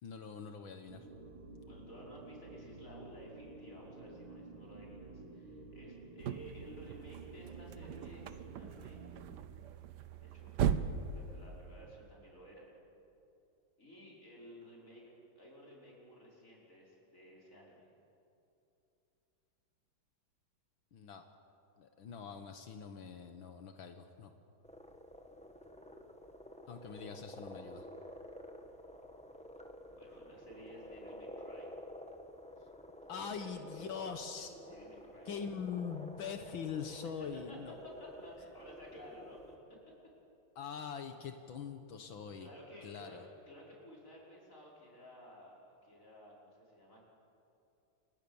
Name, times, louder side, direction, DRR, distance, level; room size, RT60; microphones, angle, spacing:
voice 1, 0.0-1.1 20.9-21.3 21.8-24.3 26.7-27.9 33.1-34.5 35.3-37.8 40.6-42.5 42.8-43.2, left 6 dB, 75° left, 7 dB, 2.0 m, -43 dB
sound 1, 0.9-9.4, right 3 dB, 85° right, 3.2 m, -52 dB
voice 2, 1.6-9.0 10.2-12.7 13.8-17.9 29.9-31.7 33.1-35.5 36.9-37.0 37.5-37.6 37.8-39.4 39.7-39.8 42.4-43.2 43.5-47.1, equal, 40° left, -3 dB, 5.9 m, -55 dB
sound 2, 6.2-12.0, right 8 dB, 65° right, 1.4 m, -39 dB
sound 3, 24.6-39.5, equal, 5° left, 1.5 m, -51 dB
29.0 x 25.5 x 7.1 m, 2.8 s
omnidirectional pair, 2.2 m